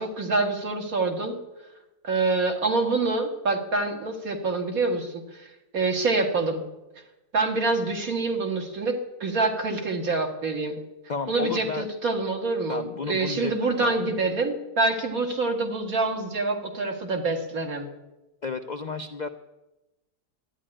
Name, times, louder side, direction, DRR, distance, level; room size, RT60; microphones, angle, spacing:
voice 1, 0.0-1.4 2.0-5.2 5.7-6.6 7.3-10.8 11.3-17.9, right 3 dB, 60° right, 3 dB, 2.4 m, -26 dB
voice 2, 11.1-11.9 12.7-14.0 18.4-19.3, left 4 dB, 85° left, 8 dB, 0.4 m, -32 dB
12.5 x 10.0 x 10.0 m, 1.0 s
omnidirectional pair, 1.7 m